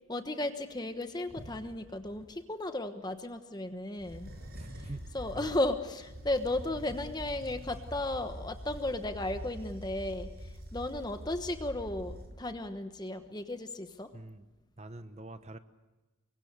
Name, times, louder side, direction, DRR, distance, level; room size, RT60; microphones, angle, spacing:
voice 1, 0.1-4.3 4.8-4.9 5.1-10.3 10.7-14.1, left 1 dB, 20° left, 8 dB, 1.1 m, -35 dB
sound 1, 1.1-2.3 4.0-12.6, equal, 45° right, 6.2 m, -45 dB
voice 2, 4.5-5.1 5.3-5.6 14.1-14.5 14.8-15.6, right 1 dB, 30° right, 11 dB, 1.0 m, -45 dB
25.0 x 23.5 x 6.8 m, 1.1 s
head